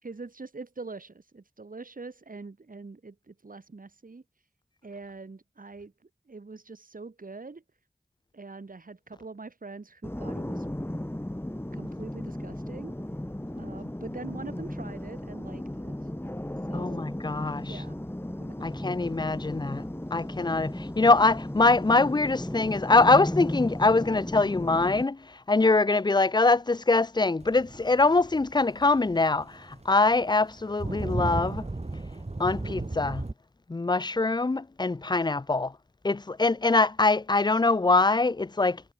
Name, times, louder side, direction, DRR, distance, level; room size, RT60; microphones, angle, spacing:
voice 1, 0.0-4.2 4.8-7.6 8.3-10.7 11.7-13.0 13.5-16.0 16.7-17.1 17.6-17.9 18.4-19.3, right 3 dB, 80° right, 4.4 m, -44 dB
sound 1, 10.0-25.0, left 1 dB, 15° left, 5.5 m, -35 dB
voice 2, 16.7-17.7 18.6-19.8 20.1-25.2 25.5-31.6 32.4-33.2 33.7-35.7 36.0-38.8, left 3 dB, 30° left, 0.5 m, -23 dB
sound 2, 27.4-33.3, right 2 dB, 50° right, 7.6 m, -35 dB
wide cardioid pair, 65°, 14 cm